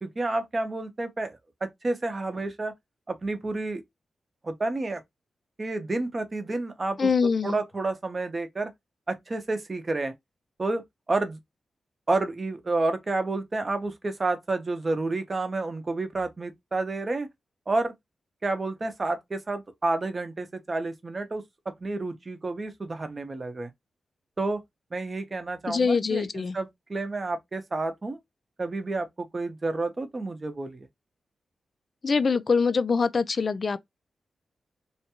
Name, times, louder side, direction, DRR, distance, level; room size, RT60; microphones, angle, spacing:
voice 1, 0.0-2.7 3.1-3.8 4.4-5.0 5.6-8.7 9.1-10.1 10.6-11.4 12.1-17.3 17.7-17.9 18.4-23.7 24.4-24.6 24.9-28.2 28.6-30.9, right 2 dB, 35° right, 0.6 m, -30 dB
voice 2, 7.0-7.6 25.7-26.6 32.0-33.8, left 5 dB, 50° left, 0.3 m, -24 dB
2.5 x 2.2 x 2.8 m
cardioid pair, 90°, 0 cm